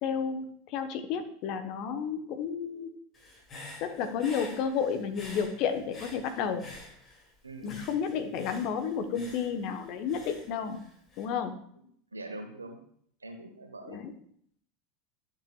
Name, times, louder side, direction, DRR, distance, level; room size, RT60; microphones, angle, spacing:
voice 1, 0.0-3.0 3.8-6.6 7.6-10.8 11.2-11.6 13.9-14.1, left 7 dB, 50° left, 8 dB, 0.9 m, -32 dB
Human voice / Breathing, 3.1-7.3 7.6-11.2, left 2 dB, 30° left, 2.3 m, -48 dB
voice 2, 7.4-7.8 11.8-11.9 12.1-12.8 13.2-14.0, right 2 dB, 85° right, 5 dB, 1.1 m, -43 dB
11.5 x 6.3 x 2.3 m, 0.65 s
figure-of-eight pair, 80°, 0 cm